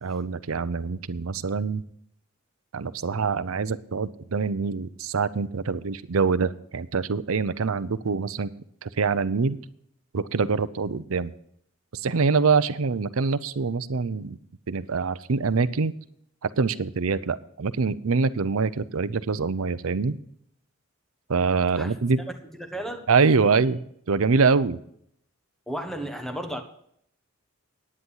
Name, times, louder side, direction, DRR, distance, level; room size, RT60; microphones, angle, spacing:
voice 1, 0.0-1.8 2.7-8.5 8.8-9.6 10.1-11.3 11.9-14.4 14.7-15.9 16.6-20.2 21.3-22.2 23.1-23.8 24.1-24.8, right 4 dB, 75° right, 14 dB, 0.6 m, -24 dB
voice 2, 22.6-23.1 25.7-26.6, right 1 dB, ahead, 5 dB, 1.3 m, -33 dB
10.5 x 9.7 x 5.6 m, 0.68 s
head